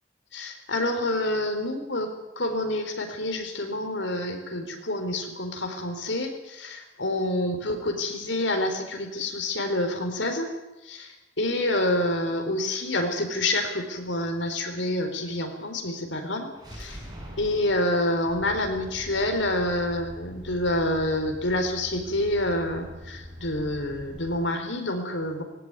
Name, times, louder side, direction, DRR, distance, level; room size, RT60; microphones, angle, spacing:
voice 1, 0.3-2.1 2.4-10.5 10.8-17.0 17.4-25.4, left 1 dB, 70° left, 6 dB, 4.0 m, -28 dB
sound 1, 16.5-20.4, right 1 dB, 20° right, 6.2 m, -45 dB
Truck, 18.3-24.4, equal, 45° right, 6.0 m, -44 dB
20.5 x 17.0 x 9.6 m, 0.98 s
head